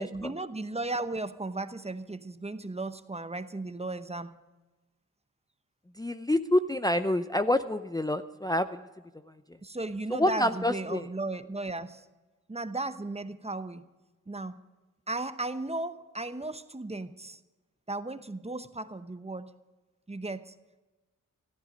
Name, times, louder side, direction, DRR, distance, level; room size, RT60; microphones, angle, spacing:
voice 1, 0.0-4.4 9.6-12.0 12.5-13.9 14.3-14.6 15.1-17.4 17.9-19.5 20.1-20.5, right 2 dB, 20° right, 12 dB, 0.9 m, -35 dB
voice 2, 6.0-8.8 10.1-11.1, left 1 dB, 10° left, 9 dB, 0.6 m, -27 dB
15.0 x 14.0 x 5.2 m, 1.2 s
cardioid pair, 50°, 32 cm